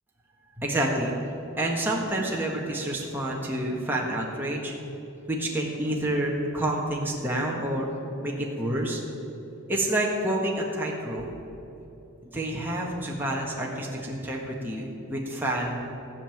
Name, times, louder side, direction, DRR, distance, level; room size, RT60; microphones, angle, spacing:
voice 1, 0.6-1.1 1.6-4.7 5.3-7.9 8.2-9.0 9.7-11.3 12.3-15.8, right 1 dB, 10° right, -3 dB, 1.5 m, -28 dB
16.0 x 5.5 x 9.1 m, 2.9 s
head